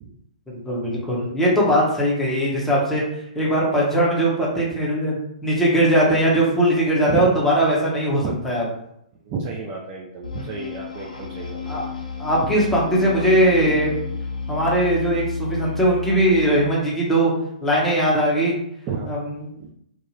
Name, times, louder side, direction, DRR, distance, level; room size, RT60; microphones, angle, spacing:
voice 1, 0.7-3.0 3.3-8.6 11.7-11.8 12.2-13.9 14.5-17.3 17.6-18.5 19.1-19.2, right 1 dB, 5° left, -5 dB, 0.7 m, -20 dB
voice 2, 9.2-11.9 12.4-12.5 18.9-19.1 19.6-19.7, right 5 dB, 25° right, -3 dB, 0.4 m, -31 dB
sound 1, 10.2-16.8, left 4 dB, 70° left, 0.6 m, -31 dB
2.3 x 2.2 x 3.1 m, 0.76 s
figure-of-eight pair, 120°, 4 cm